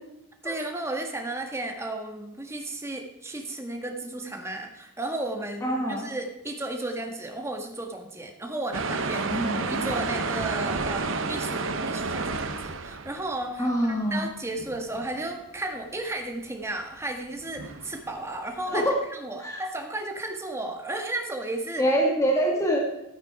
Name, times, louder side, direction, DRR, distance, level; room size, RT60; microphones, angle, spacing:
voice 1, 0.4-21.8, right 2 dB, 15° right, 3 dB, 1.7 m, -34 dB
voice 2, 5.6-6.1 9.3-9.8 13.6-14.3 18.7-19.0 19.4-19.6 21.8-22.9, equal, 15° left, -1 dB, 1.8 m, -25 dB
sound 1, 8.7-13.5 13.9-14.3 14.6-15.3 16.9-17.0 17.5-18.4, right 3 dB, 65° right, 1.0 m, -31 dB
13.0 x 8.9 x 4.9 m, 0.93 s
head